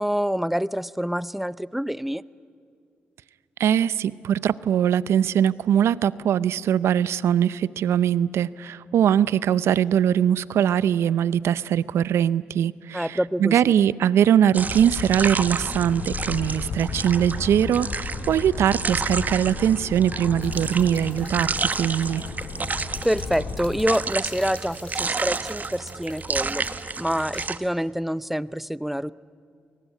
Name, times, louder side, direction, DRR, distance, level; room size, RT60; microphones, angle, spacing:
voice 1, 0.0-2.2 12.9-13.7 23.0-26.6 27.0-29.1, equal, 5° right, 19 dB, 0.6 m, -26 dB
voice 2, 3.6-22.2, right 9 dB, 75° right, 19 dB, 0.6 m, -21 dB
sound 1, 14.5-27.6, right 4 dB, 40° right, 1.1 m, -31 dB
sound 2, 14.7-23.9, left 5 dB, 70° left, 3.6 m, -34 dB
sound 3, 20.4-27.5, left 2 dB, 25° left, 4.5 m, -45 dB
28.0 x 19.5 x 9.9 m, 2.3 s
supercardioid pair, 55°, 4 cm